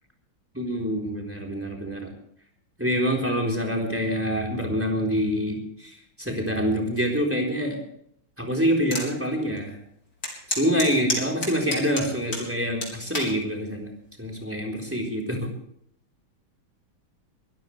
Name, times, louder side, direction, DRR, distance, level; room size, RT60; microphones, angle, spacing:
voice 1, 0.5-2.1 2.8-7.8 8.4-9.8 10.5-13.9 14.2-15.5, equal, 5° right, 2 dB, 3.9 m, -26 dB
sound 1, 8.9-9.1 9.6-9.7 10.2-12.5 12.8-13.3 14.0-14.4, left 2 dB, 55° left, 4.6 m, -29 dB
22.5 x 15.0 x 3.3 m, 0.68 s
omnidirectional pair, 2.2 m